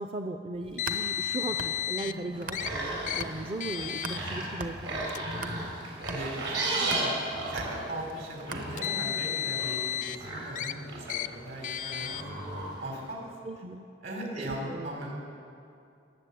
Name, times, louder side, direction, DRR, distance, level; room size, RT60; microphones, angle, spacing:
voice 1, 0.0-5.4 13.4-13.9 14.4-14.9, right 2 dB, 30° right, 4 dB, 0.5 m, -38 dB
sound 1, 0.5-2.9 3.2-9.1, right 2 dB, 45° right, 1.0 m, -42 dB
Car, 0.8-2.1 2.5-2.7 3.1-3.2 3.6-4.2 5.0-5.2 6.1-6.2 8.5-10.2 10.6-10.7 11.1-11.3 11.6-12.2, left 10 dB, 45° left, 0.4 m, -32 dB
sound 2, 2.3-13.1, right 2 dB, 85° right, 4.3 m, -36 dB
voice 2, 6.1-11.2 11.4-12.5 12.8-13.2 14.0-15.2, right 1 dB, 65° right, 0 dB, 3.7 m, -38 dB
21.5 x 8.0 x 8.3 m, 2.5 s
head